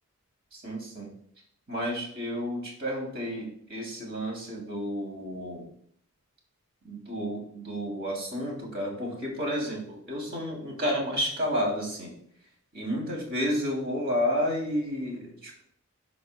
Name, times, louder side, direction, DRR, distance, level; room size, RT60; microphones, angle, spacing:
voice 1, 0.5-1.1 1.7-5.6 6.8-12.1 12.7-15.6, equal, 50° right, -1 dB, 3.1 m, -31 dB
12.0 x 5.3 x 2.3 m, 0.63 s
head